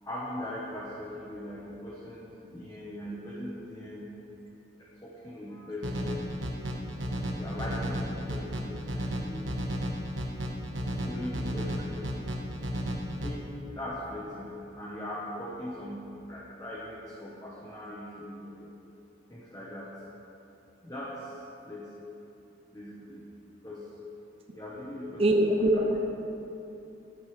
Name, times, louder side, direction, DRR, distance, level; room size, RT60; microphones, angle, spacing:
voice 1, 0.0-4.1 4.8-6.2 7.3-9.5 11.0-12.2 13.2-18.7 19.3-19.9 20.8-21.4 21.7-21.9 22.7-23.2 23.6-23.9 24.5-25.9, left 1 dB, 20° left, -6 dB, 1.0 m, -40 dB
sound 1, 5.8-13.3, equal, 85° right, 1.2 m, -33 dB
voice 2, 25.2-26.0, right 1 dB, 30° right, 2 dB, 0.6 m, -23 dB
13.0 x 9.1 x 3.3 m, 2.8 s
head